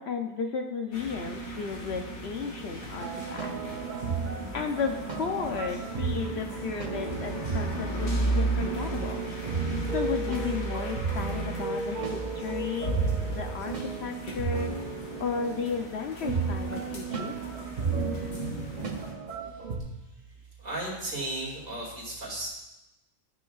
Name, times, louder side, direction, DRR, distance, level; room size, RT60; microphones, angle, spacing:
voice 1, 0.0-3.5 4.5-9.2 9.9-13.0 13.3-14.7 15.2-17.3, left 5 dB, 60° left, 4 dB, 0.8 m, -34 dB
sound 1, 0.9-19.1, right 2 dB, 85° left, 1.9 m, -35 dB
sound 2, 3.0-19.8, right 5 dB, 40° right, 0.8 m, -34 dB
voice 2, 20.6-22.5, right 1 dB, 70° right, -4 dB, 2.8 m, -35 dB
13.0 x 6.2 x 2.4 m, 0.97 s
omnidirectional pair, 1.4 m